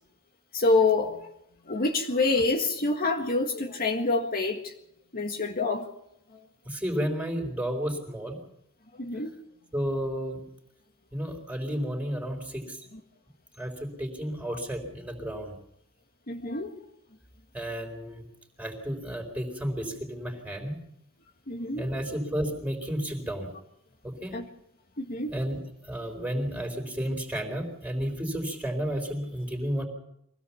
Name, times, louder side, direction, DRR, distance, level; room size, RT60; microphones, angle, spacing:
voice 1, 0.5-1.3 1.7-4.7 5.1-5.9 9.0-9.3 16.3-16.7 21.5-21.9 24.3-24.5 25.0-25.3, left 3 dB, 45° left, 2 dB, 1.8 m, -26 dB
voice 2, 6.6-8.4 9.7-10.4 11.1-12.9 13.6-15.6 17.5-18.2 18.6-20.8 21.8-23.5 24.0-24.3 25.3-29.9, equal, 5° right, 3 dB, 4.1 m, -32 dB
24.0 x 17.0 x 7.2 m, 0.76 s
head